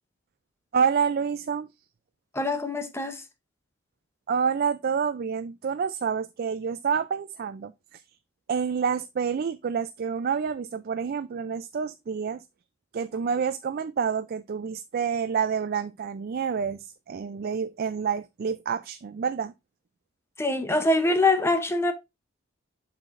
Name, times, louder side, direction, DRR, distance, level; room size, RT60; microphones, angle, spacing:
voice 1, 0.7-1.7 4.3-8.0 8.5-12.4 12.9-19.5, right 6 dB, 50° right, 0.3 m, -28 dB
voice 2, 2.3-3.2 20.4-21.9, left 2 dB, 10° left, 0.7 m, -24 dB
7.6 x 5.7 x 2.5 m
head